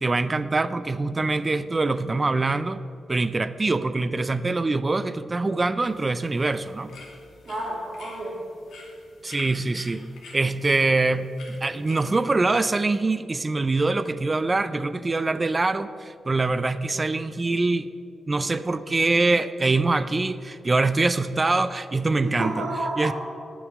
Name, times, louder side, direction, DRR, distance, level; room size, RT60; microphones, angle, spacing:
voice 1, 0.0-2.8 3.1-6.9 9.2-10.0 10.3-17.9 18.3-22.5 23.0-23.1, right 3 dB, 20° right, 14 dB, 0.4 m, -24 dB
sound 1, 5.8-12.3, left 3 dB, 85° left, 2.3 m, -48 dB
voice 2, 7.4-8.4 22.2-23.1, right 2 dB, 45° right, -4 dB, 3.0 m, -30 dB
9.5 x 6.2 x 8.4 m, 2.3 s
wide cardioid pair, 160°, 0 cm